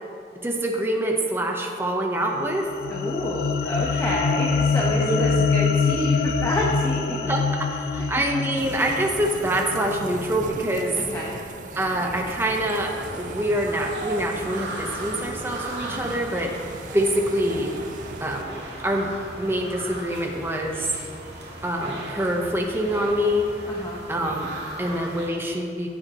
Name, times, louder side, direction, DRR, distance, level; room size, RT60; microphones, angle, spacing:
voice 1, 0.4-2.7 3.9-4.0 4.9-5.2 7.3-11.0 11.8-17.7 18.2-19.1 19.4-20.9 21.6-23.5 24.1-25.9, right 1 dB, 15° right, 1 dB, 0.9 m, -25 dB
sound 1, 2.4-10.8, left 5 dB, 60° left, 0.3 m, -25 dB
voice 2, 2.9-7.2 10.9-11.4 23.7-24.0, equal, 20° left, -4 dB, 0.9 m, -28 dB
sound 2, 8.6-18.4, right 4 dB, 45° right, 0.4 m, -38 dB
sound 3, 12.4-25.3, right 1 dB, 85° right, 1.9 m, -38 dB
14.5 x 7.8 x 3.0 m, 2.5 s
head